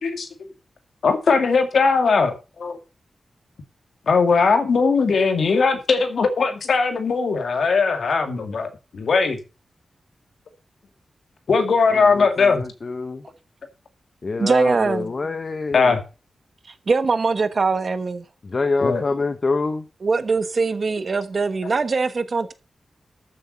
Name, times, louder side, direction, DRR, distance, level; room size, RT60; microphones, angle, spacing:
voice 1, 1.0-2.3 2.6-2.8 4.1-8.7 9.0-9.4 11.5-12.7 15.7-16.0 18.8-19.0, left 4 dB, 65° left, 2.4 m, -19 dB
voice 2, 11.9-13.2 14.2-15.9 18.4-19.9, left 3 dB, 35° left, 1.0 m, -26 dB
voice 3, 14.4-15.1 16.9-18.2 20.0-22.5, right 4 dB, 40° right, 1.1 m, -22 dB
13.5 x 7.4 x 5.4 m
wide cardioid pair, 165°, 0 cm